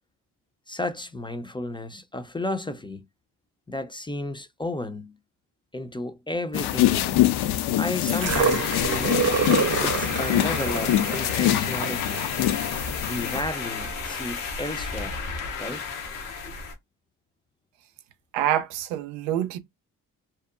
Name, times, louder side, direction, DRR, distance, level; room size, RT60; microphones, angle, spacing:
voice 1, 0.7-3.1 3.7-5.2 5.7-7.3 7.8-9.2 9.8-12.2 13.0-15.2 15.6-15.9 16.4-16.6, left 2 dB, 10° left, 0.4 m, -33 dB
sound 1, 6.5-13.4, left 13 dB, 65° left, 0.5 m, -25 dB
sound 2, 8.1-14.1 15.0-15.1, right 6 dB, 35° right, 0.5 m, -28 dB
sound 3, 8.2-16.7, left 5 dB, 85° left, 0.8 m, -33 dB
voice 2, 18.3-19.6, right 11 dB, 90° right, 0.5 m, -26 dB
2.8 x 2.0 x 2.4 m
supercardioid pair, 50°, 43 cm